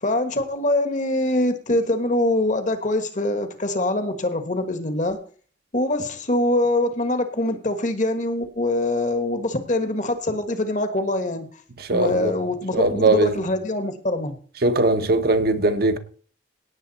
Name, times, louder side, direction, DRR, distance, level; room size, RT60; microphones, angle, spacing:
voice 1, 0.0-5.2 5.7-11.5 11.9-14.3, left 1 dB, 45° left, 1.6 m, -24 dB
voice 2, 11.9-12.4 12.7-13.3 14.6-16.0, right 2 dB, 55° right, 1.0 m, -20 dB
17.0 x 7.3 x 4.2 m
head